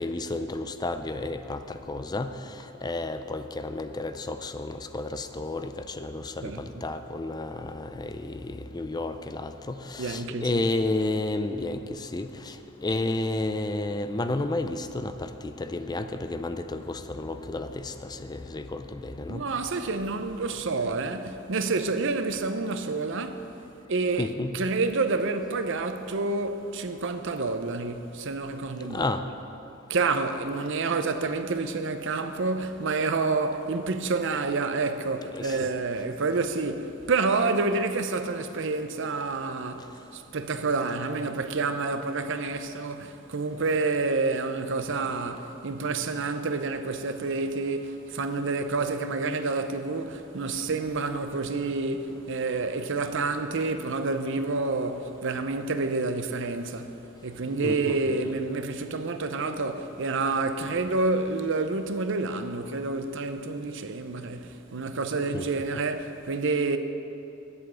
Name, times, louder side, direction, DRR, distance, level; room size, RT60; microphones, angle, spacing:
voice 1, 0.0-2.3 2.8-12.6 12.8-19.4 24.2-24.5 28.9-29.2 35.3-35.7 57.6-58.1 65.3-65.5, left 2 dB, 20° left, 0.4 m, -31 dB
voice 2, 6.4-6.8 10.0-10.5 19.3-23.5 23.9-29.1 29.9-56.9 57.2-66.8, right 3 dB, 65° right, 0.7 m, -28 dB
8.3 x 7.9 x 9.0 m
head